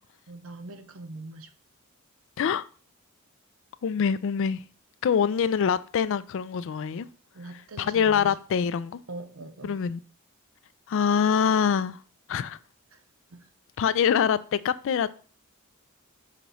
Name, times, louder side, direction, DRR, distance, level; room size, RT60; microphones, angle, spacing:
voice 1, 0.3-1.5 7.3-8.3 9.1-9.8 12.9-13.0 13.3-13.5, right 2 dB, 70° right, 0.7 m, -42 dB
voice 2, 3.8-4.6 5.0-7.1 7.8-9.0 9.6-10.0 10.9-12.0 12.3-12.6 13.8-15.1, left 7 dB, 65° left, 0.3 m, -24 dB
5.8 x 3.1 x 5.3 m
head